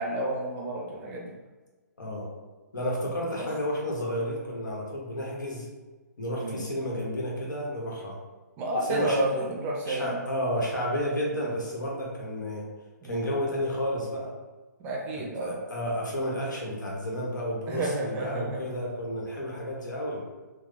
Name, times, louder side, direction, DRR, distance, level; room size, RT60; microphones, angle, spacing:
voice 1, 0.0-1.4 3.4-3.5 6.4-6.6 8.6-10.2 13.0-13.3 14.8-15.6 17.7-18.7, right 1 dB, 20° right, -2 dB, 0.5 m, -30 dB
voice 2, 2.0-2.3 2.7-5.7 6.2-8.2 8.9-9.4 9.8-12.7 13.0-14.3 15.2-20.2, equal, 85° left, -3 dB, 1.1 m, -31 dB
3.3 x 2.0 x 3.3 m, 1.3 s
hypercardioid pair, 145°, 10 cm